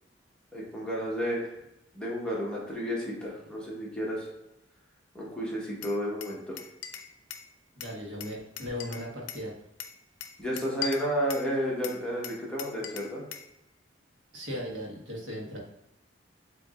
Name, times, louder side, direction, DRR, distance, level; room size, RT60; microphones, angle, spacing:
voice 1, 0.5-1.5 1.9-4.3 5.1-6.6 10.4-13.2, equal, 5° left, -5 dB, 1.2 m, -32 dB
Glass, 5.8-7.5 7.8-9.5 9.8-11.5 11.8-13.5, left 8 dB, 80° left, 0.5 m, -40 dB
voice 2, 7.7-9.5 14.3-15.6, left 1 dB, 75° right, -2 dB, 1.4 m, -37 dB
7.4 x 2.8 x 2.4 m, 0.88 s
head